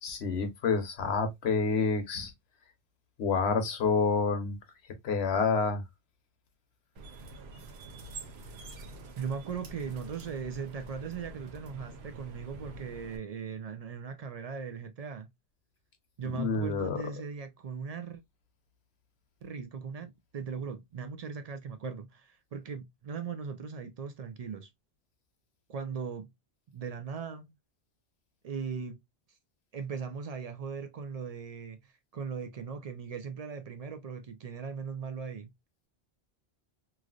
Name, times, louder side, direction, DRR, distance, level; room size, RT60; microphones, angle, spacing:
voice 1, 0.0-2.3 3.2-4.6 5.0-5.8 16.2-17.0, left 4 dB, 80° left, 1.1 m, -28 dB
sound 1, 7.0-13.2, right 2 dB, 75° right, 0.9 m, -46 dB
voice 2, 9.2-15.3 16.2-18.2 19.4-24.7 25.7-26.3 26.7-27.5 28.4-29.0 29.7-35.5, right 6 dB, 55° right, 0.4 m, -39 dB
3.1 x 2.5 x 2.4 m
omnidirectional pair, 1.1 m